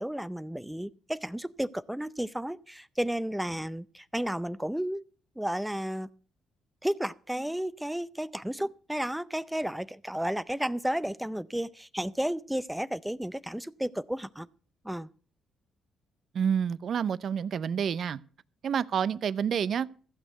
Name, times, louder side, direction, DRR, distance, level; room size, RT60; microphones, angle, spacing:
voice 1, 0.0-5.0 5.4-6.1 6.8-14.5 14.8-15.1, equal, 5° right, 0.5 m, -32 dB
voice 2, 16.3-18.2 18.6-19.9, right 7 dB, 60° right, 0.6 m, -28 dB
15.0 x 6.3 x 7.7 m
cardioid pair, 90°, 0 cm